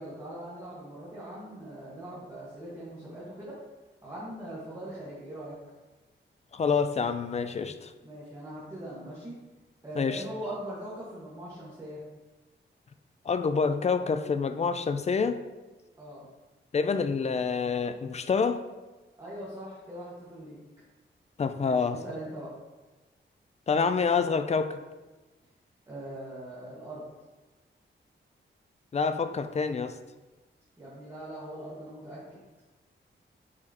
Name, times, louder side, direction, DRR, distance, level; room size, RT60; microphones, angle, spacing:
voice 1, 0.0-3.6 4.0-5.6 8.0-9.4 9.8-12.0 16.0-16.3 19.2-20.6 21.5-22.6 25.9-27.0 30.8-32.4, right 1 dB, 20° right, -8 dB, 1.5 m, -41 dB
voice 2, 6.5-7.9 10.0-10.2 13.3-15.4 16.7-18.6 21.4-22.0 23.7-24.8 28.9-30.0, left 5 dB, 35° left, 10 dB, 0.4 m, -27 dB
8.0 x 5.0 x 2.9 m, 1.2 s
wide cardioid pair, 155°, 20 cm